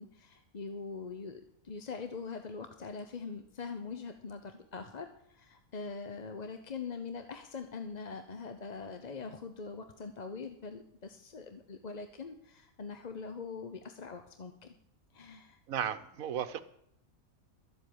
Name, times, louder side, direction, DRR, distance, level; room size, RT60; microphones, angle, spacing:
voice 1, 0.0-14.7 15.1-15.6, left 4 dB, 35° left, 7 dB, 0.8 m, -43 dB
voice 2, 15.7-16.6, right 9 dB, 80° right, 12 dB, 1.2 m, -34 dB
13.0 x 7.9 x 8.8 m, 0.74 s
omnidirectional pair, 1.4 m